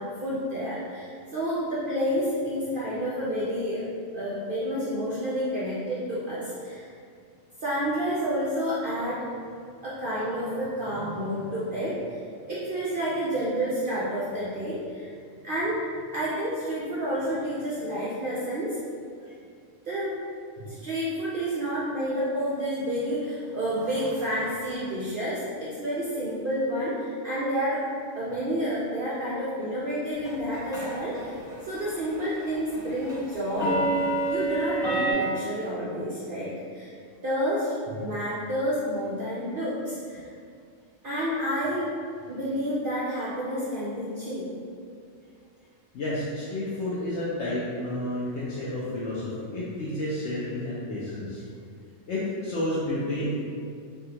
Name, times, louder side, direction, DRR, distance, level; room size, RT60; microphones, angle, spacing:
voice 1, 0.0-3.8 4.1-6.9 7.6-9.3 9.8-12.2 12.5-15.1 15.4-15.9 16.1-18.8 19.8-20.2 20.6-27.8 28.1-31.3 31.6-33.8 34.3-36.9 37.2-40.3 41.0-41.9 42.3-44.5, equal, 70° right, -8 dB, 0.5 m, -29 dB
sound 1, 30.2-31.2 31.5-31.8 32.1-35.1, right 2 dB, 5° right, 0.6 m, -28 dB
voice 2, 45.9-51.4 52.1-53.4, left 1 dB, 65° left, -8 dB, 0.8 m, -30 dB
3.4 x 2.3 x 2.8 m, 2.2 s
omnidirectional pair, 1.4 m